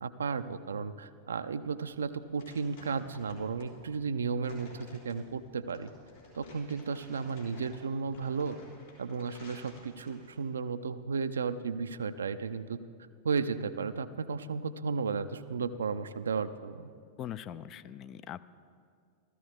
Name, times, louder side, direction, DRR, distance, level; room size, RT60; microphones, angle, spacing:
voice 1, 0.0-5.9 6.4-8.6 9.0-12.8 13.2-16.9, right 5 dB, 70° right, 13 dB, 0.4 m, -34 dB
sound 1, 1.9-10.5, left 2 dB, 65° left, 3.7 m, -54 dB
voice 2, 17.2-18.5, left 10 dB, 35° left, 15 dB, 0.3 m, -41 dB
15.0 x 14.0 x 3.4 m, 2.2 s
figure-of-eight pair, 90°, 0 cm